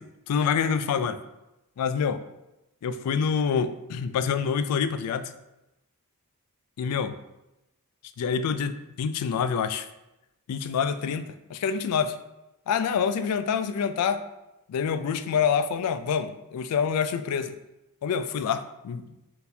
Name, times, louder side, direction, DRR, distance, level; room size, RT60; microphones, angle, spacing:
voice 1, 0.3-1.2 1.8-2.2 2.8-5.3 6.8-7.2 8.2-9.9 10.5-12.2 12.7-14.2 14.7-17.6 18.0-19.0, left 6 dB, 80° left, 11 dB, 0.3 m, -26 dB
4.0 x 4.0 x 2.7 m, 0.93 s
head